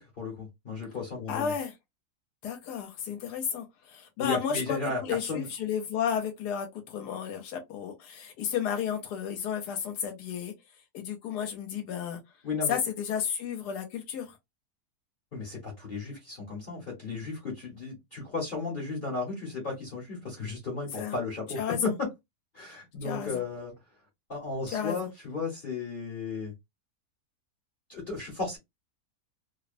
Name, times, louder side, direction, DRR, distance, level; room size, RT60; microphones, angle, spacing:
voice 1, 0.0-1.5 4.2-5.5 12.4-12.8 15.3-22.1 22.5-23.7 24.3-26.5 27.9-28.6, left 4 dB, 40° left, 1.0 m, -34 dB
voice 2, 1.3-1.7 2.4-10.5 10.9-12.2 12.7-14.4 21.0-21.1 21.6-21.9 23.0-23.4 24.7-25.1, left 8 dB, 85° left, 1.2 m, -32 dB
2.8 x 2.0 x 2.4 m
omnidirectional pair, 1.7 m